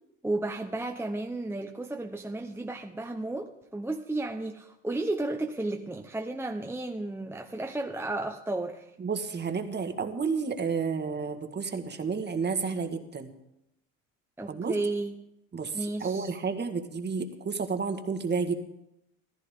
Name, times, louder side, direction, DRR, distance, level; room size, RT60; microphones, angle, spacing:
voice 1, 0.2-8.9 14.4-15.1 15.7-16.3, right 2 dB, 5° right, 3 dB, 1.0 m, -33 dB
voice 2, 9.0-13.3 14.5-14.7 15.5-15.7 16.0-18.5, right 5 dB, 25° right, 7 dB, 1.6 m, -31 dB
14.5 x 14.5 x 3.8 m, 0.84 s
hypercardioid pair, 85°, 40 cm